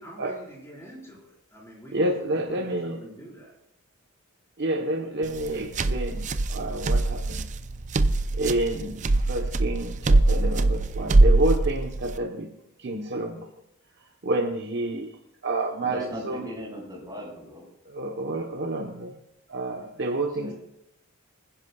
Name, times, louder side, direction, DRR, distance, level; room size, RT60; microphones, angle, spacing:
voice 1, 0.0-3.5, equal, 15° left, -5 dB, 4.8 m, -45 dB
voice 2, 1.9-3.0 4.6-7.5 8.3-12.5 12.8-13.5 14.2-15.1 15.4-16.5 17.9-19.2 19.5-20.5, right 2 dB, 55° right, 2 dB, 1.1 m, -29 dB
sound 1, 5.2-12.2, right 2 dB, 35° right, 0.5 m, -22 dB
voice 3, 15.8-17.7 20.1-20.5, equal, 20° right, -3 dB, 5.9 m, -38 dB
25.5 x 10.5 x 2.4 m, 0.80 s
head